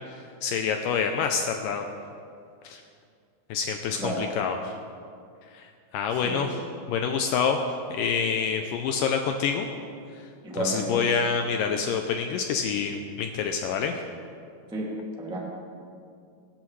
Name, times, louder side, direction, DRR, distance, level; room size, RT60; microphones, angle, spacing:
voice 1, 0.1-1.9 2.6-2.8 3.5-4.7 5.5-6.6 6.9-7.6 7.9-9.7 10.6-14.0, left 6 dB, 85° left, 4 dB, 1.9 m, -27 dB
voice 2, 6.1-6.5 10.4-11.0 14.7-14.9 15.2-15.4, right 1 dB, 5° right, -4 dB, 0.9 m, -32 dB
21.0 x 11.5 x 3.2 m, 2.3 s
omnidirectional pair, 4.6 m